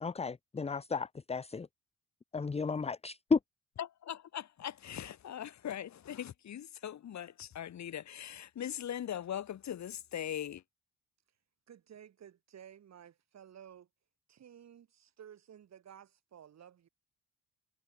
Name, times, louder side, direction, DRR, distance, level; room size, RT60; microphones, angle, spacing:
voice 1, 0.0-1.7 2.3-3.4, left 4 dB, 20° left, 0.9 m, -33 dB
voice 2, 3.8-10.6, left 10 dB, 65° left, 6.7 m, -40 dB
voice 3, 11.7-13.9 14.3-16.9, right 9 dB, 60° right, 7.4 m, -54 dB
cardioid pair, 90°, 30 cm